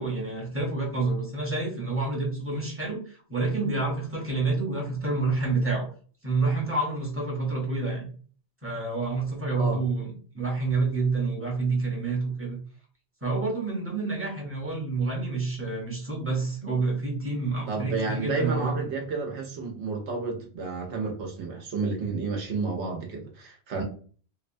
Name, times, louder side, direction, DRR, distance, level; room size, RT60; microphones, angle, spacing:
voice 1, 0.0-5.9 6.2-8.1 8.6-12.6 13.2-18.7, right 3 dB, 15° right, 0.6 m, -28 dB
voice 2, 17.7-23.8, right 4 dB, 90° right, 1.0 m, -31 dB
2.8 x 2.1 x 2.5 m
omnidirectional pair, 1.1 m